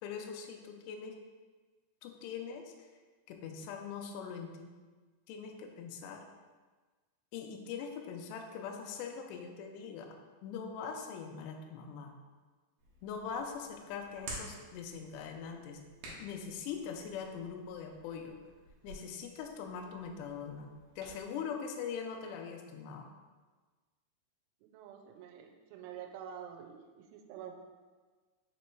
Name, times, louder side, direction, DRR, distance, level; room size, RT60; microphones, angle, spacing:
voice 1, 0.0-1.2 2.0-2.7 3.3-4.7 5.3-6.2 7.3-10.2 10.4-12.1 13.0-15.8 16.1-18.4 18.8-20.7 21.0-23.1, left 6 dB, 85° left, 3 dB, 2.4 m, -42 dB
Hands, 12.8-21.2, right 2 dB, 70° right, 2.2 m, -52 dB
voice 2, 24.7-27.5, right 9 dB, 90° right, 3 dB, 3.1 m, -47 dB
6.8 x 3.1 x 4.4 m, 1.4 s
omnidirectional pair, 5.5 m